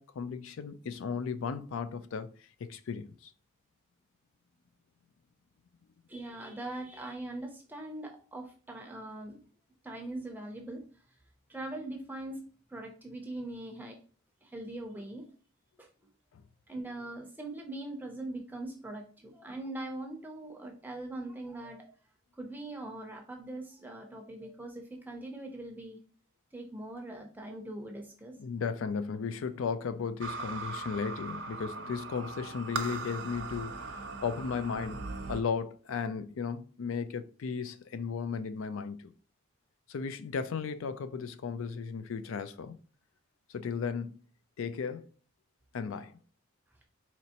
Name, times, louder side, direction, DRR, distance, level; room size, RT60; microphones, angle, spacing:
voice 1, 0.0-2.3 2.6-3.3 28.4-39.1 39.9-42.8 43.5-44.2 44.6-45.1 45.7-46.2, left 5 dB, 80° left, 0.4 m, -35 dB
voice 2, 6.1-9.4 9.8-10.8 11.5-12.4 12.7-14.0 14.4-15.2 15.8-15.9 16.7-21.9 22.3-26.0 26.5-28.3, right 2 dB, 10° right, 0.5 m, -41 dB
sound 1, 30.2-35.4, right 3 dB, 60° right, 0.5 m, -39 dB
4.4 x 3.0 x 2.8 m
head